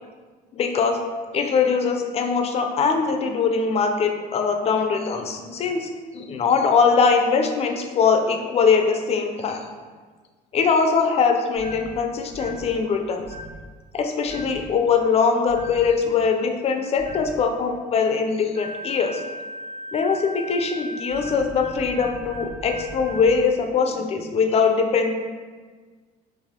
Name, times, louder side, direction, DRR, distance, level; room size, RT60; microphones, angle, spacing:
voice 1, 0.5-1.0 1.3-9.6 10.5-13.2 13.9-19.2 19.9-25.1, left 5 dB, 35° left, 4 dB, 0.4 m, -22 dB
sound 1, 11.6-11.9 12.3-12.7 13.2-13.6 14.3-14.6 15.5-15.8 17.0-17.3 18.6-23.3, equal, 65° right, 1.1 m, -37 dB
4.0 x 2.4 x 2.7 m, 1.4 s
cardioid pair, 110°, 17 cm